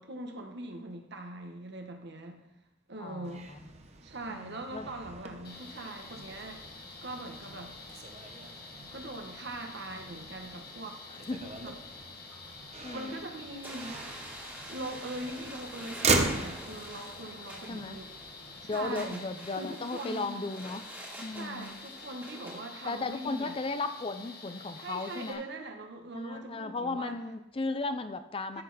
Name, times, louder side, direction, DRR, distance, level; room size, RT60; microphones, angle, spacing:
voice 1, 0.0-2.4 2.9-3.5 4.0-6.6 7.0-7.7 8.9-11.0 11.6-11.8 12.9-14.1 14.7-18.1 18.6-19.2 19.6-20.4 21.3-23.6 24.8-27.1 28.5-28.6, right 2 dB, 55° right, 4 dB, 1.3 m, -41 dB
voice 2, 3.0-3.4 4.3-4.9 11.3-11.4 12.8-13.1 17.7-18.0 18.7-20.8 21.2-21.8 22.8-25.4 26.2-28.6, left 3 dB, 25° left, 10 dB, 0.5 m, -35 dB
Motor vehicle (road), 3.2-19.1, right 3 dB, 35° right, 0.9 m, -38 dB
sound 1, 5.4-25.3, left 4 dB, 50° left, 1.7 m, -48 dB
sound 2, 13.6-22.6, right 1 dB, 10° right, 2.0 m, -47 dB
13.0 x 6.4 x 4.1 m, 0.95 s
head